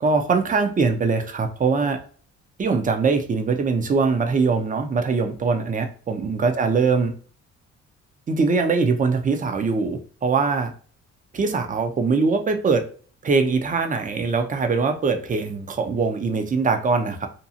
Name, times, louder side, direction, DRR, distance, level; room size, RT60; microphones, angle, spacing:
voice 1, 0.0-2.0 2.6-7.1 8.3-10.7 11.3-12.8 13.2-17.3, right 4 dB, 25° right, 6 dB, 0.5 m, -22 dB
2.6 x 2.3 x 2.6 m, 0.43 s
cardioid pair, 90°, 30 cm